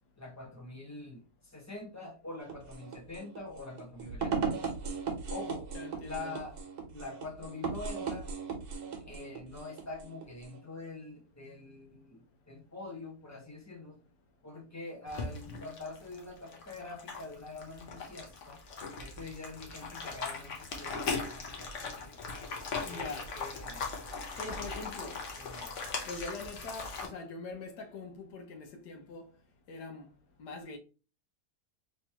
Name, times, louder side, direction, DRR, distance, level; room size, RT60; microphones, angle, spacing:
voice 1, 0.2-4.5 5.3-5.7 6.0-6.6 6.9-8.3 9.0-14.0 14.4-18.6 19.0-22.2 22.9-23.9 25.3-25.8, left 3 dB, 15° left, 0.6 m, -45 dB
sound 1, 2.4-10.6, right 5 dB, 75° right, 1.3 m, -38 dB
voice 2, 5.7-6.4 22.8-23.3 24.4-25.2 26.0-29.3 29.7-30.1 30.4-30.8, left 3 dB, 85° left, 1.4 m, -43 dB
sound 2, 15.1-27.1, left 4 dB, 55° left, 1.1 m, -39 dB
3.4 x 3.0 x 2.8 m
omnidirectional pair, 1.7 m